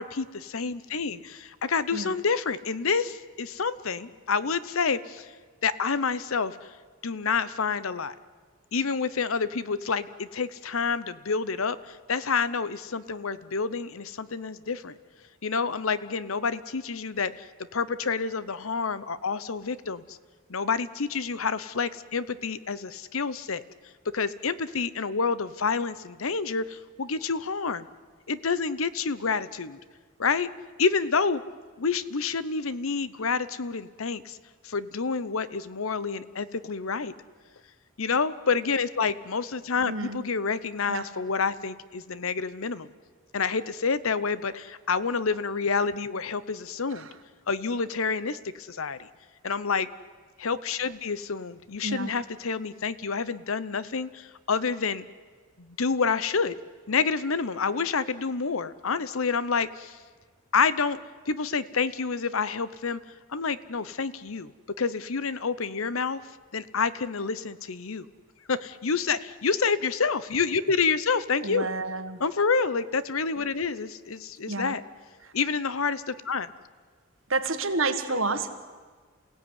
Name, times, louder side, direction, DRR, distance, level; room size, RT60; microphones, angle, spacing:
voice 1, 0.0-5.3 5.6-6.6 7.0-8.1 8.7-15.0 15.4-17.4 17.7-20.2 20.5-23.6 24.1-27.9 28.3-29.8 30.2-30.5 30.8-31.4 31.8-34.4 34.6-37.1 38.0-42.9 43.3-47.1 47.5-49.1 49.4-49.9 50.4-55.0 55.6-56.6 56.9-60.0 60.5-61.0 61.3-63.0 63.3-64.5 64.8-66.2 66.5-68.1 68.5-71.7 72.2-74.8 75.3-76.5 78.1-78.2, left 5 dB, 80° left, 16 dB, 0.9 m, -28 dB
voice 2, 39.9-40.2 40.9-41.1 46.9-47.1 51.8-52.1 71.4-72.2 74.5-74.7 75.2-75.3 77.3-78.5, right 3 dB, 70° right, 9 dB, 1.7 m, -29 dB
28.0 x 16.5 x 9.7 m, 1.5 s
head